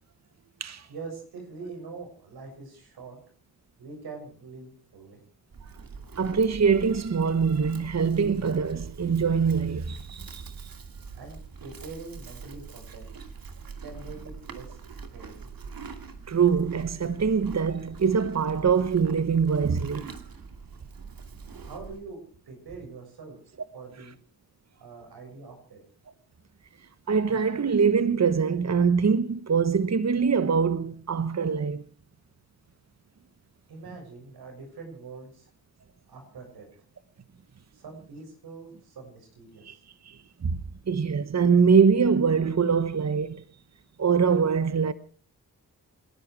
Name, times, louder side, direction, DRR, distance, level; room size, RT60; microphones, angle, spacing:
voice 1, 0.9-3.2 3.8-5.2 11.1-13.0 13.8-14.8 15.1-15.5 21.6-23.4 23.7-24.2 24.8-25.8 33.7-35.5 36.1-36.7 37.7-39.8, right 4 dB, 90° right, 7.0 m, -43 dB
Livestock farm animals working animals, 5.5-22.0, right 5 dB, 65° right, 2.5 m, -43 dB
voice 2, 6.2-10.5 16.3-20.1 27.1-31.8 39.6-39.8 40.0-40.6 40.9-43.4 44.0-44.9, right 6 dB, 45° right, 1.1 m, -23 dB
27.5 x 11.0 x 4.7 m
cardioid pair, 45°, 37 cm